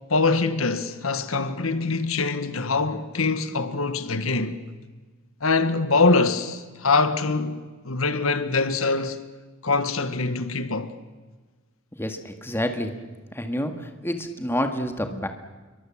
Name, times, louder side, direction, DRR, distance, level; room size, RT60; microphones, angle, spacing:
voice 1, 0.1-4.6 5.4-9.2 9.6-10.9, left 3 dB, 85° left, 1.6 m, -24 dB
voice 2, 12.0-12.9 13.4-13.7 14.0-15.3, equal, 10° left, 2.0 m, -28 dB
28.0 x 23.0 x 7.5 m
head